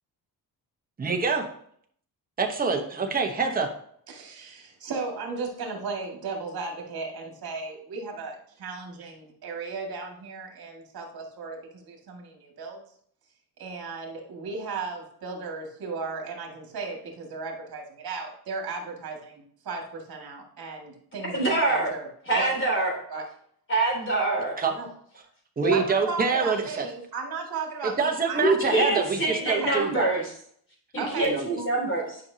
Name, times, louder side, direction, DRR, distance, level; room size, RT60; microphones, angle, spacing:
voice 1, 1.0-1.5 2.4-3.7 24.6-24.7 25.6-26.9 27.8-30.1 31.2-31.5, right 5 dB, 20° right, 2 dB, 1.0 m, -26 dB
voice 2, 4.1-12.8 13.6-22.1 22.3-22.5 23.1-23.3 24.7-24.9 25.7-28.4 29.5-29.8 31.0-31.3, right 4 dB, 65° right, 1 dB, 2.1 m, -35 dB
voice 3, 21.3-21.9 22.2-23.0 23.7-24.5 25.6-25.8 28.4-30.2 30.9-32.2, right 2 dB, 30° left, -2 dB, 3.4 m, -25 dB
10.5 x 5.4 x 2.8 m, 0.64 s
wide cardioid pair, 155°, 39 cm